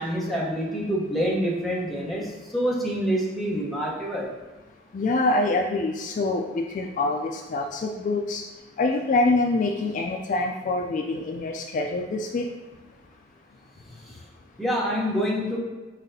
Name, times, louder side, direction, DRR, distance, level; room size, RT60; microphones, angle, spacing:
voice 1, 0.0-4.3 14.6-15.6, equal, ahead, -4 dB, 0.9 m, -26 dB
voice 2, 4.9-8.4 8.8-12.5, left 2 dB, 45° left, 3 dB, 0.3 m, -25 dB
4.7 x 4.0 x 2.7 m, 1.2 s
head